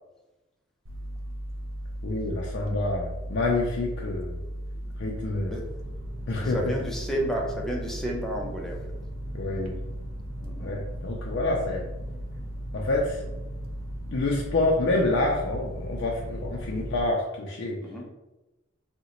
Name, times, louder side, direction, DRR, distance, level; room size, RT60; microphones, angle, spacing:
sound 1, 0.9-17.0, equal, 70° right, 0.5 m, -36 dB
voice 1, 2.0-4.4 5.0-5.5 6.3-6.6 9.3-9.7 10.6-11.8 12.7-13.2 14.1-17.8, left 2 dB, 60° left, -2 dB, 0.4 m, -27 dB
voice 2, 6.4-8.8 10.4-10.7 17.8-18.1, right 1 dB, ahead, -2 dB, 0.5 m, -31 dB
3.7 x 2.1 x 2.9 m, 1.0 s
head